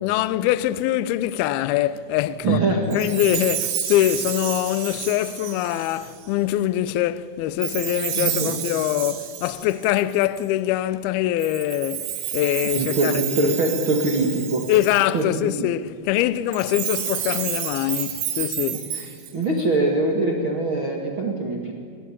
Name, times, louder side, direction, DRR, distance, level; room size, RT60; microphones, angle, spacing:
voice 1, 0.0-13.6 14.7-18.9, left 13 dB, 80° left, 2.3 m, -23 dB
voice 2, 2.4-3.0 8.2-8.5 12.7-14.6 15.1-15.7 18.7-21.7, right 2 dB, 45° right, 1.6 m, -23 dB
Chime, 2.9-6.3 7.6-10.5 11.4-15.2 16.5-19.6, right 10 dB, 85° right, 4.0 m, -30 dB
22.5 x 18.5 x 9.9 m
omnidirectional pair, 5.0 m